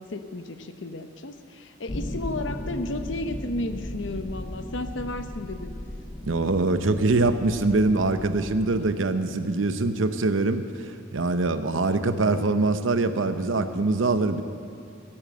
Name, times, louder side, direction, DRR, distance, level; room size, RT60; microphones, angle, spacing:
voice 1, 0.0-5.8, left 2 dB, 70° left, 8 dB, 0.8 m, -33 dB
sound 1, 1.9-8.9, left 1 dB, 25° left, 0.7 m, -37 dB
voice 2, 6.2-10.7 11.1-14.4, right 3 dB, 85° right, 10 dB, 0.8 m, -23 dB
16.5 x 8.8 x 7.7 m, 2.5 s
head